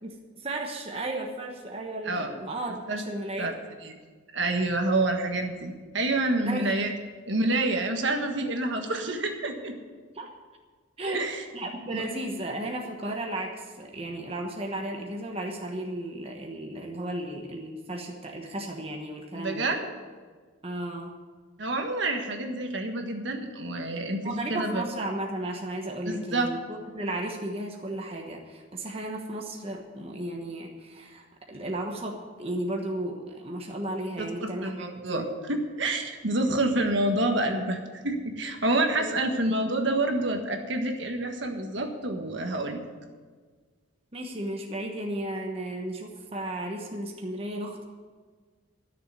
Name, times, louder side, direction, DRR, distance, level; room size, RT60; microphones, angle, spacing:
voice 1, 0.0-3.5 6.4-6.7 10.1-10.3 11.0-19.7 20.6-21.1 24.2-34.7 35.1-35.3 38.8-39.1 44.1-47.8, right 1 dB, 30° right, 1 dB, 1.2 m, -34 dB
voice 2, 4.3-6.9 7.2-9.7 11.0-11.4 11.9-12.0 19.3-19.9 21.6-24.2 24.5-24.8 26.0-26.5 34.2-42.8, right 2 dB, 65° right, 4 dB, 1.6 m, -28 dB
13.0 x 6.9 x 9.3 m, 1.5 s
head